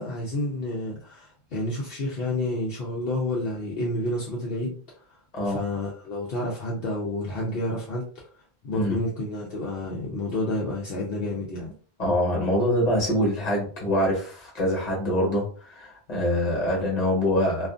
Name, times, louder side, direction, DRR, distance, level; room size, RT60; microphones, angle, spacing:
voice 1, 0.0-5.0 5.4-8.1 8.6-11.7, left 1 dB, 70° left, -3 dB, 0.8 m, -29 dB
voice 2, 12.0-17.7, left 1 dB, 40° left, -2 dB, 1.2 m, -24 dB
2.4 x 2.4 x 2.4 m, 0.42 s
omnidirectional pair, 1.0 m